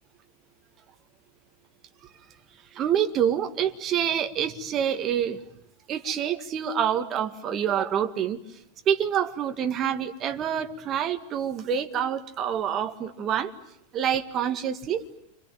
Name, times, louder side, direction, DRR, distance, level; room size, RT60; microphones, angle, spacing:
voice 1, 2.7-5.4 5.9-8.4 8.9-13.5 13.9-15.1, right 9 dB, 30° right, 6 dB, 2.0 m, -27 dB
29.0 x 27.0 x 7.3 m, 0.78 s
figure-of-eight pair, 90°, 0 cm